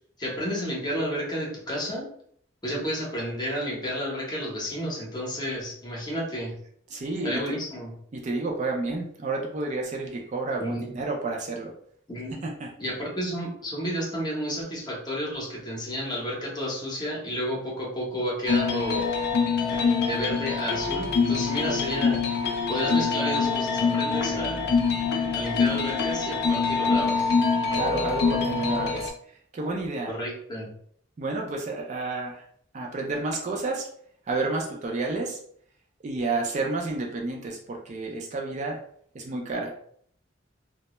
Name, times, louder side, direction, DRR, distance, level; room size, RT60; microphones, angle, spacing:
voice 1, 0.2-2.1 2.6-6.5 7.2-7.9 10.6-10.9 12.1-12.5 12.8-19.1 19.7-19.8 20.1-22.2 22.7-24.7 25.3-27.3 30.1-30.7, equal, 20° left, -3 dB, 0.7 m, -31 dB
voice 2, 6.9-7.5 8.1-11.7 12.4-12.7 27.7-29.1 29.5-30.1 31.2-32.4 32.7-33.9 34.3-35.4 36.0-38.8 39.1-39.7, right 3 dB, 40° right, 0 dB, 0.4 m, -30 dB
sound 1, 18.5-29.1, left 5 dB, 55° left, 0.3 m, -25 dB
2.1 x 2.0 x 2.9 m, 0.62 s
head